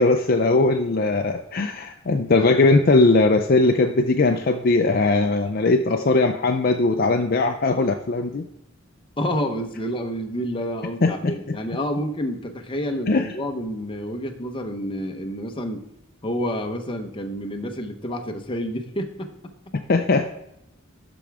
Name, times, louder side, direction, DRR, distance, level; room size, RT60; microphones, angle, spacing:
voice 1, 0.0-8.4 11.0-11.5 13.1-13.3 19.9-20.3, left 3 dB, 45° left, 5 dB, 0.5 m, -19 dB
voice 2, 9.2-15.8 16.2-19.3, equal, 25° left, 4 dB, 0.9 m, -29 dB
12.0 x 6.1 x 3.5 m, 0.80 s
head